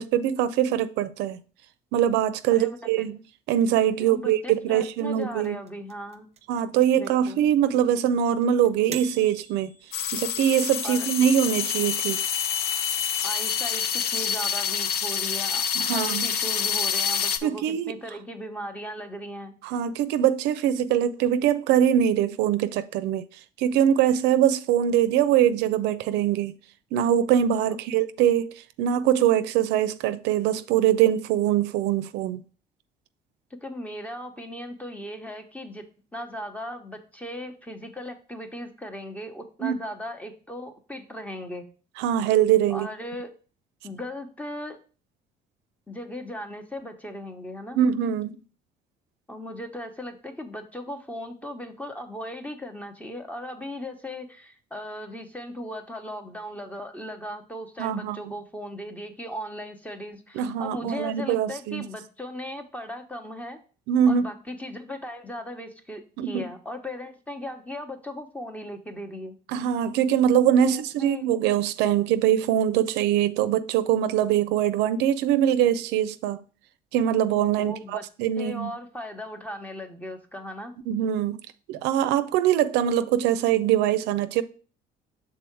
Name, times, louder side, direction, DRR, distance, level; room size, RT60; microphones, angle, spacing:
voice 1, 0.0-1.4 1.9-3.2 3.5-5.6 6.5-9.7 10.1-12.2 15.8-16.2 17.4-17.9 19.6-23.2 23.6-26.5 26.9-28.5 28.8-32.4 39.6-39.8 42.0-42.9 47.8-48.4 57.8-58.2 60.4-61.8 63.9-64.3 66.2-66.5 69.5-76.4 76.9-78.7 80.9-81.4 81.7-84.4, right 10 dB, 90° right, 0.4 m, -23 dB
voice 2, 2.5-3.0 4.0-6.3 7.0-7.4 10.8-11.1 13.2-19.6 33.6-35.8 36.1-41.6 42.7-43.3 43.8-44.8 45.9-47.8 49.3-63.6 64.1-69.4 70.6-71.3 77.6-78.0 78.4-80.7, equal, 10° left, 0.9 m, -37 dB
sound 1, 3.6-10.6, right 8 dB, 40° right, 0.5 m, -43 dB
sound 2, 9.9-17.4, left 7 dB, 70° left, 0.6 m, -27 dB
6.2 x 3.7 x 4.5 m
cardioid pair, 110°, 17 cm